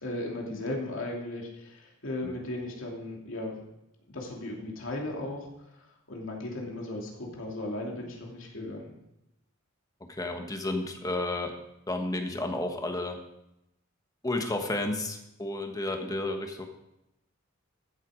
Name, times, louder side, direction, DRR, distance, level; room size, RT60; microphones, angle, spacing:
voice 1, 0.0-3.6 4.1-8.9, left 1 dB, 65° left, -1 dB, 2.8 m, -36 dB
voice 2, 10.1-11.5 11.9-13.2 14.2-16.6, left 2 dB, 15° left, 4 dB, 1.3 m, -32 dB
14.5 x 7.9 x 5.1 m, 0.86 s
head